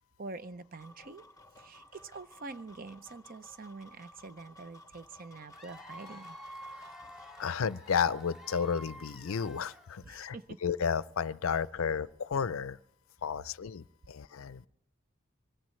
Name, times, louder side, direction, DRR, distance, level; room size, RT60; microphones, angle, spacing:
voice 1, 0.2-1.2 1.6-6.4 10.0-10.6, right 3 dB, 45° right, 13 dB, 0.6 m, -46 dB
sound 1, 0.7-7.5, left 1 dB, 15° left, 0.8 m, -56 dB
Cheering / Applause / Crowd, 5.5-10.2, equal, 5° right, 1.8 m, -49 dB
voice 2, 7.4-10.4 10.6-12.8 13.2-14.7, left 6 dB, 80° left, 18 dB, 0.5 m, -32 dB
24.0 x 18.5 x 3.2 m, 0.79 s
head